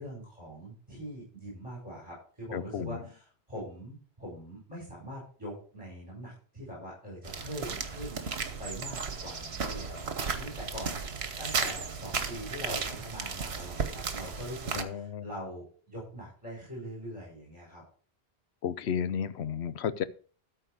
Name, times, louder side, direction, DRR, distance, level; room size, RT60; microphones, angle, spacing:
voice 1, 0.0-17.8, equal, 30° right, -6 dB, 5.5 m, -43 dB
voice 2, 2.5-3.0 14.7-15.3 18.6-20.0, left 8 dB, 80° left, 15 dB, 1.0 m, -33 dB
sound 1, 7.2-14.8, right 5 dB, 75° right, 1.4 m, -35 dB
13.5 x 4.5 x 6.5 m, 0.42 s
omnidirectional pair, 1.1 m